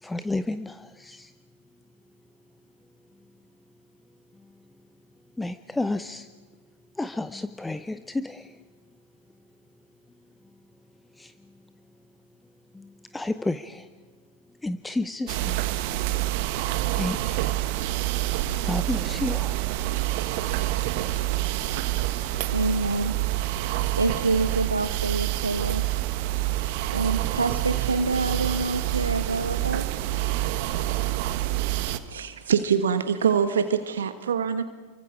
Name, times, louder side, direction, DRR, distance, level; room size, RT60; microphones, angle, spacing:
voice 1, 0.0-1.3 5.4-6.3 7.0-8.6 11.1-11.3 12.7-13.9 14.6-15.7 16.9-17.5 18.6-19.6, left 2 dB, 5° left, 11 dB, 0.7 m, -31 dB
sound 1, 15.3-32.0, right 15 dB, 45° right, 1.3 m, -27 dB
voice 2, 22.5-23.2 24.0-25.8 26.9-29.9, right 3 dB, 80° right, 9 dB, 1.0 m, -27 dB
voice 3, 32.1-34.7, right 7 dB, 65° right, 9 dB, 1.4 m, -24 dB
29.0 x 24.0 x 5.0 m, 1.4 s
figure-of-eight pair, 90°, 0 cm